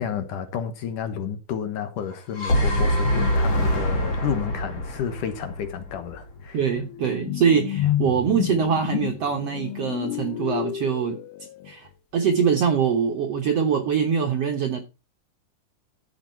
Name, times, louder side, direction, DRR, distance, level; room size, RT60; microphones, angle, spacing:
voice 1, 0.0-6.6, left 8 dB, 70° left, 2.5 m, -31 dB
sound 1, 2.1-6.3, equal, 35° left, 2.5 m, -24 dB
sound 2, 5.1-5.2 5.6-11.7, left 13 dB, 85° left, 2.8 m, -30 dB
voice 2, 6.5-11.2 11.6-14.8, right 7 dB, 65° right, 1.6 m, -23 dB
14.0 x 6.4 x 4.4 m
omnidirectional pair, 4.3 m